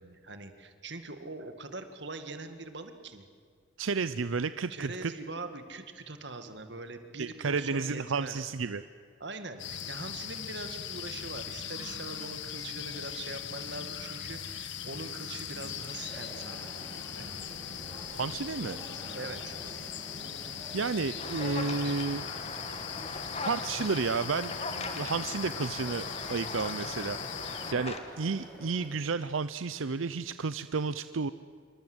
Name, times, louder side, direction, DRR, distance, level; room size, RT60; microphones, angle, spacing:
voice 1, 0.0-3.3 4.7-8.5 9.2-17.3 19.1-19.6, right 3 dB, 60° right, 8 dB, 2.1 m, -42 dB
voice 2, 3.8-5.1 7.2-8.8 18.1-18.8 20.7-22.3 23.4-31.3, right 4 dB, 85° right, 13 dB, 0.6 m, -32 dB
sound 1, 9.6-27.7, left 8 dB, 65° left, 1.4 m, -40 dB
sound 2, 15.9-28.9, equal, 10° left, 7.9 m, -49 dB
sound 3, 21.2-28.0, left 3 dB, 30° left, 2.1 m, -39 dB
27.0 x 24.5 x 8.0 m, 2.1 s
head